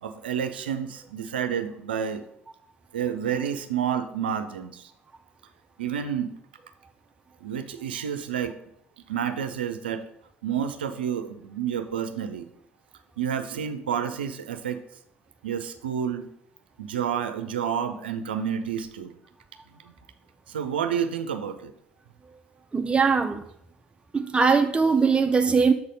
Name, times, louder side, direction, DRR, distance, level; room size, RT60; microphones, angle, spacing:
voice 1, 0.0-2.2 2.9-4.9 5.8-6.3 7.4-8.5 9.0-10.1 10.4-12.5 13.2-14.8 15.4-16.3 16.8-19.1 19.7-19.9 20.5-21.7, right 8 dB, 85° right, 9 dB, 0.5 m, -29 dB
voice 2, 22.7-23.4 24.1-25.7, right 5 dB, 20° right, 7 dB, 0.5 m, -21 dB
6.8 x 4.1 x 5.2 m, 0.73 s
hypercardioid pair, 55°, 5 cm